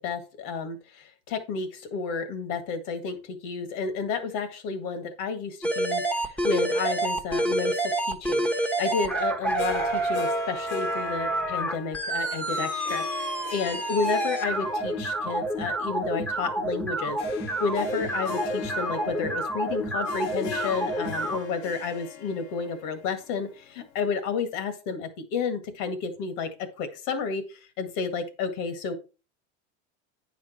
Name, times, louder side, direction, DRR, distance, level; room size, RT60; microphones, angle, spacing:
voice 1, 0.0-26.5 26.8-28.9, left 5 dB, 60° left, 10 dB, 2.0 m, -31 dB
sound 1, 5.6-21.4, right 2 dB, 5° left, 1.1 m, -28 dB
Harp, 9.6-24.0, left 9 dB, 85° left, 1.0 m, -39 dB
9.6 x 5.2 x 4.4 m, 0.32 s
supercardioid pair, 120°, 36 cm